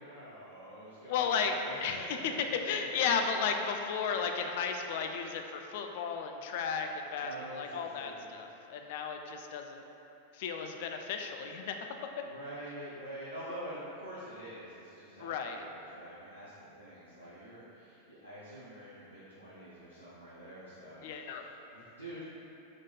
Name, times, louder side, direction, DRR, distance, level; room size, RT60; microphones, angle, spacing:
voice 1, 0.0-3.0 7.2-8.3 12.2-22.2, equal, 90° left, -11 dB, 0.8 m, -47 dB
voice 2, 1.1-9.8 10.3-11.9 12.2-12.3 15.2-15.6 21.0-21.4, left 6 dB, 50° left, 4 dB, 0.3 m, -34 dB
3.9 x 3.1 x 3.9 m, 2.9 s
figure-of-eight pair, 90°, 0 cm